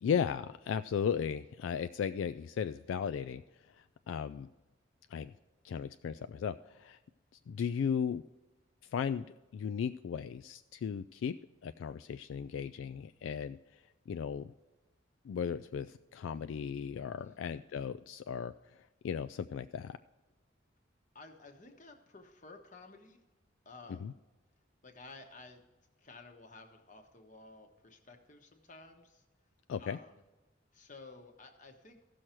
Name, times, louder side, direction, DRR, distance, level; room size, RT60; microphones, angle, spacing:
voice 1, 0.0-3.4 3.7-4.5 5.1-5.3 5.6-7.0 7.5-8.2 8.9-9.3 9.5-11.3 11.6-13.8 14.1-14.5 15.2-18.5 19.0-20.0 24.0-24.1 29.7-30.0, left 7 dB, 75° left, 11 dB, 0.3 m, -36 dB
voice 2, 17.1-17.4 21.1-23.2 23.6-24.2 24.8-25.6 26.0-29.2 29.8-30.2 30.7-32.1, left 3 dB, 40° left, 5 dB, 1.2 m, -54 dB
15.5 x 6.3 x 4.4 m, 1.1 s
head